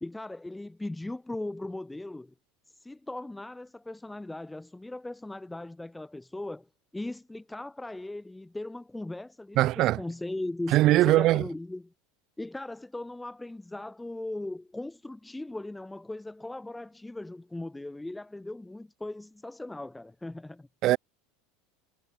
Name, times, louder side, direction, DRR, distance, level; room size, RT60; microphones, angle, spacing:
voice 1, 0.0-2.3 2.7-6.7 6.9-11.9 12.4-20.7, left 2 dB, 5° left, 0.6 m, -38 dB
voice 2, 9.6-10.0 10.7-11.4 20.8-21.0, right 16 dB, 45° right, 0.5 m, -21 dB
supercardioid pair, 140°, 0 cm